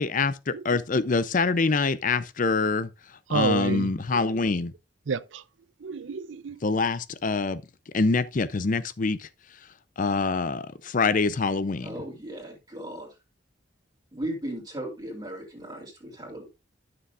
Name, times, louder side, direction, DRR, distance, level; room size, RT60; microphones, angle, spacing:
voice 1, 0.0-2.9 3.3-4.7 6.6-7.6 7.9-9.3 10.0-11.9, left 4 dB, 45° left, 0.6 m, -25 dB
voice 2, 3.3-4.2 5.1-5.4 5.8-6.6, right 5 dB, 80° right, 0.5 m, -30 dB
voice 3, 11.8-13.1 14.1-16.5, right 1 dB, 20° right, 3.2 m, -36 dB
12.5 x 6.9 x 2.5 m
head